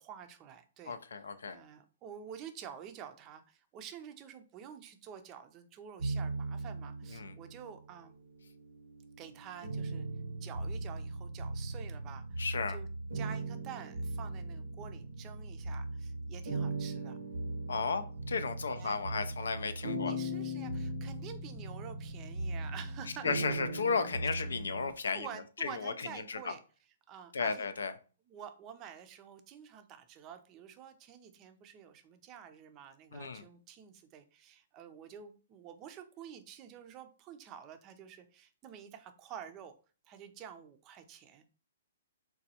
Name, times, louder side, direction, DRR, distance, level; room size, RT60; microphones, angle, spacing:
voice 1, 0.0-1.0 1.5-8.2 9.2-10.1 10.4-12.4 12.7-12.9 13.1-17.2 18.8-19.0 20.0-23.3 25.1-26.6 27.1-27.7 28.3-39.7 40.1-41.5, right 8 dB, 30° right, 9 dB, 0.4 m, -49 dB
voice 2, 0.9-1.6 7.1-7.3 12.4-12.8 17.7-20.1 23.2-25.3 25.6-25.9 26.3-26.5 27.3-27.9 33.1-33.4, left 5 dB, 80° left, 11 dB, 0.3 m, -34 dB
sound 1, 6.0-7.7 8.4-24.9, right 2 dB, 80° right, 0.7 m, -38 dB
3.9 x 2.2 x 2.8 m, 0.37 s
hypercardioid pair, 135°, 0 cm